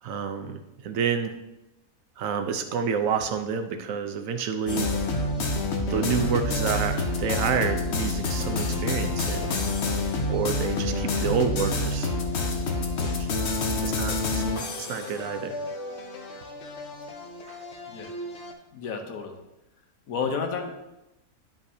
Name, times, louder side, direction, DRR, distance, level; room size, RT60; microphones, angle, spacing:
voice 1, 0.0-1.4 2.2-4.9 5.9-9.5 10.3-12.1 13.0-13.3 13.8-15.5 17.5-17.6, right 6 dB, 70° right, 7 dB, 1.0 m, -29 dB
sound 1, 4.7-18.5, left 2 dB, 55° left, 1.0 m, -28 dB
voice 2, 18.7-19.4 20.1-20.8, left 5 dB, 70° left, 4 dB, 1.3 m, -31 dB
10.0 x 5.6 x 2.7 m, 0.93 s
omnidirectional pair, 1.6 m